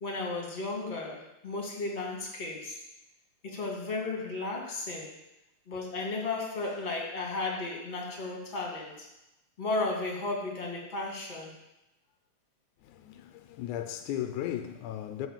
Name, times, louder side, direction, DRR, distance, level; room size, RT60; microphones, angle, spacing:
voice 1, 0.0-2.8 3.4-5.1 5.7-8.9 9.6-11.5, left 3 dB, 25° left, 2.1 m, -34 dB
voice 2, 12.8-15.3, left 11 dB, 85° left, 2.1 m, -36 dB
12.0 x 4.5 x 7.4 m
omnidirectional pair, 3.5 m